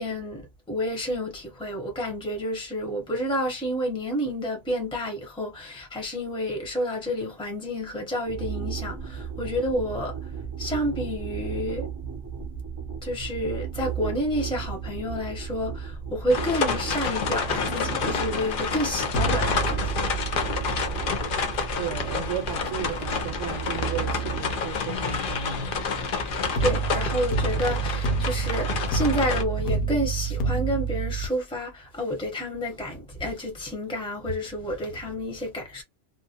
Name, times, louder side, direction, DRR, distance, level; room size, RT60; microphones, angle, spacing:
voice 1, 0.0-10.3 10.6-11.9 13.0-19.9 26.6-35.8, equal, 5° left, 0.8 m, -29 dB
sound 1, 8.3-26.7, right 7 dB, 30° right, 0.4 m, -35 dB
sound 2, 16.3-29.4, left 6 dB, 60° left, 0.6 m, -29 dB
sound 3, 19.1-24.2 26.6-31.3, right 5 dB, 85° left, 0.9 m, -29 dB
voice 2, 21.8-25.8, right 7 dB, 85° right, 0.9 m, -34 dB
2.4 x 2.1 x 2.8 m
omnidirectional pair, 1.2 m